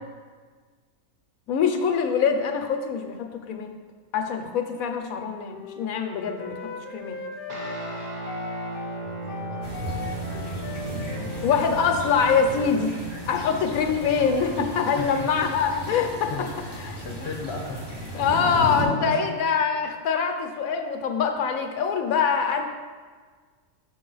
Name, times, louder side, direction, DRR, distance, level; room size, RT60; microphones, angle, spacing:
voice 1, 1.5-3.7 4.1-6.5 6.9-7.2 11.4-12.9 13.3-16.5 16.9-17.0 18.1-22.6, left 6 dB, 70° left, 5 dB, 1.1 m, -24 dB
Wind instrument woodwind instrument, 5.4-12.9, left 4 dB, 90° left, 0.4 m, -39 dB
sound 1, 7.5-17.2, right 2 dB, 35° right, 0.8 m, -38 dB
voice 2, 9.0-10.7 11.0-11.5 15.0-15.3 16.3-18.0 18.8-19.2, left 3 dB, 50° left, 1 dB, 1.0 m, -36 dB
sound 2, 9.6-18.8, equal, 15° right, 1.4 m, -35 dB
6.2 x 6.0 x 3.9 m, 1.5 s
omnidirectional pair, 1.6 m